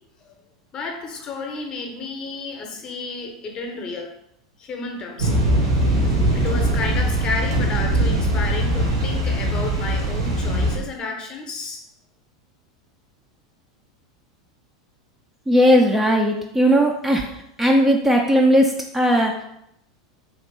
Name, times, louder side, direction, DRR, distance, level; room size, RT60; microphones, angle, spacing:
voice 1, 0.7-4.1 4.6-5.7 6.0-11.8, left 3 dB, 30° left, 2 dB, 0.7 m, -32 dB
sound 1, 5.2-10.8, right 1 dB, 70° right, 1.1 m, -21 dB
voice 2, 15.5-17.3 17.6-19.4, equal, 10° right, 1 dB, 0.3 m, -17 dB
3.1 x 2.8 x 3.2 m, 0.78 s
figure-of-eight pair, 85°, 3 cm